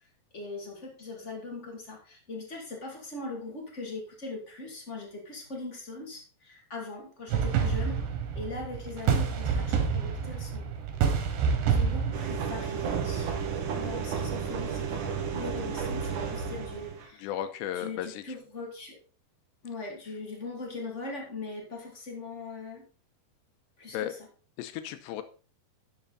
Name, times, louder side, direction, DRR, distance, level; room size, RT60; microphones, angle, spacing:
voice 1, 0.3-8.0 8.3-10.7 11.7-13.3 13.7-17.3 17.7-19.0 19.6-22.8 23.8-24.2, left 3 dB, 30° left, 0 dB, 1.4 m, -40 dB
sound 1, 7.3-13.5, right 6 dB, 80° right, 3.7 m, -28 dB
sound 2, 12.1-17.0, right 6 dB, 60° right, 2.5 m, -32 dB
voice 2, 17.2-18.4 23.9-24.1 24.6-25.2, left 11 dB, 85° left, 10 dB, 3.0 m, -35 dB
11.0 x 6.9 x 4.1 m, 0.38 s
omnidirectional pair, 4.9 m